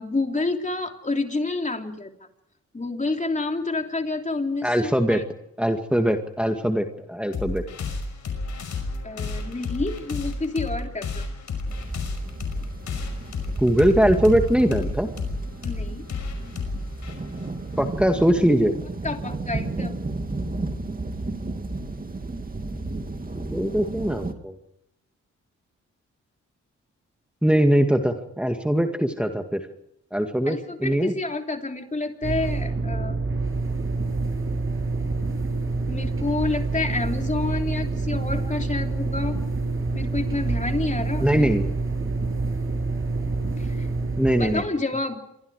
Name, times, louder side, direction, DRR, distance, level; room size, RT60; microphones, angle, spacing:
voice 1, 0.0-2.1 2.7-5.2 9.0-11.2 15.6-16.0 19.0-20.0 30.5-33.2 35.9-39.4 39.9-41.5 43.6-43.9 44.4-45.2, left 3 dB, 25° left, 4 dB, 3.2 m, -29 dB
voice 2, 4.6-5.2 5.6-7.6 13.6-15.1 17.8-18.7 23.4-24.6 27.4-29.7 30.1-31.1 41.2-41.7 44.2-44.6, equal, 5° right, 5 dB, 2.0 m, -21 dB
sound 1, 7.3-18.4, left 3 dB, 80° left, 5.6 m, -32 dB
sound 2, 11.7-24.3, right 2 dB, 30° right, 2.5 m, -33 dB
sound 3, 32.2-44.6, right 3 dB, 45° right, 7.1 m, -27 dB
28.0 x 23.5 x 4.9 m, 0.80 s
cardioid pair, 65°, 29 cm